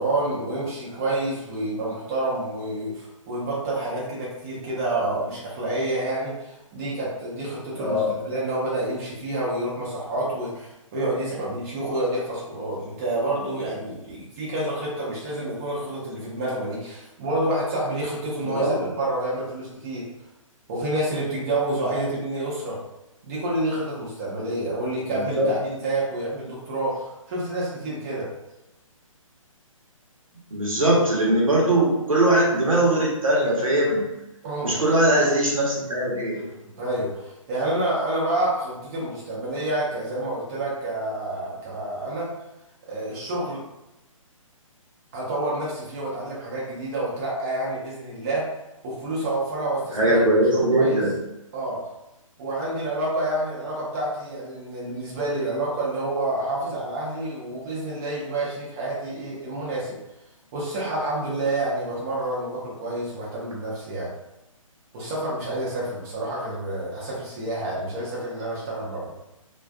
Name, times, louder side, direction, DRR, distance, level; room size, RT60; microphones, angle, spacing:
voice 1, 0.0-20.1 20.7-22.8 23.2-28.3 34.4-34.8 36.6-42.3 42.9-43.6 45.1-48.6 48.8-50.2 50.5-51.1 51.5-51.9 52.4-60.0 60.5-64.1 64.9-69.1, right 1 dB, 25° right, -6 dB, 0.7 m, -28 dB
voice 2, 7.8-8.1 18.4-18.9 25.1-25.5 30.5-34.1 34.6-36.4 49.9-51.1, right 1 dB, 75° right, -4 dB, 0.9 m, -21 dB
2.4 x 2.4 x 2.3 m, 0.92 s
figure-of-eight pair, 135°, 18 cm